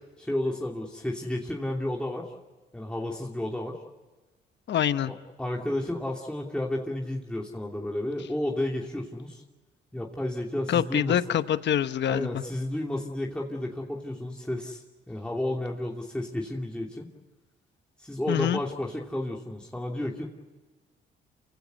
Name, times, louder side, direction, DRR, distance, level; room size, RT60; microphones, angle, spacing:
voice 1, 0.2-2.3 2.7-3.8 5.1-9.4 9.9-11.2 12.1-17.1 18.0-20.3, left 1 dB, 5° left, 2.8 m, -32 dB
voice 2, 4.7-5.1 10.7-12.4 18.3-18.6, left 10 dB, 65° left, 1.0 m, -25 dB
28.0 x 16.5 x 9.5 m
cardioid pair, 90°, 20 cm